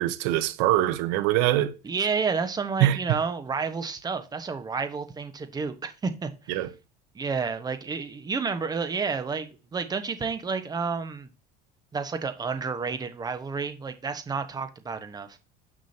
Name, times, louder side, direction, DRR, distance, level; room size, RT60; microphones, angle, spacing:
voice 1, 0.0-1.7 2.8-3.2 6.5-6.7, right 14 dB, 80° right, 0.9 m, -23 dB
voice 2, 1.8-6.7 7.1-11.3 11.9-15.4, right 5 dB, 20° right, 1.2 m, -30 dB
9.7 x 6.1 x 2.8 m
cardioid pair, 130°, 20 cm